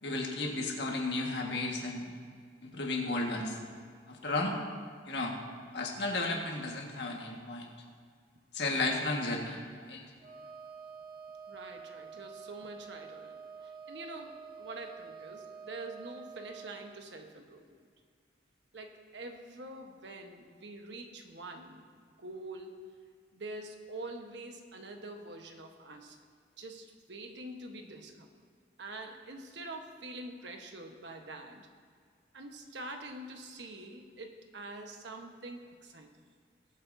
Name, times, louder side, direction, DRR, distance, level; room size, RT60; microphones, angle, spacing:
voice 1, 0.0-2.1 2.6-3.6 4.1-4.6 5.1-5.3 5.7-7.7 8.5-10.0, left 2 dB, 70° left, 0 dB, 1.6 m, -33 dB
Wind instrument woodwind instrument, 10.2-16.9, right 6 dB, 30° right, 1.5 m, -48 dB
voice 2, 11.5-17.8 18.7-22.8 23.3-26.2 26.6-28.3 28.8-31.6 32.3-36.1, right 2 dB, 75° right, 4 dB, 1.2 m, -45 dB
20.0 x 8.6 x 2.7 m, 2.1 s
head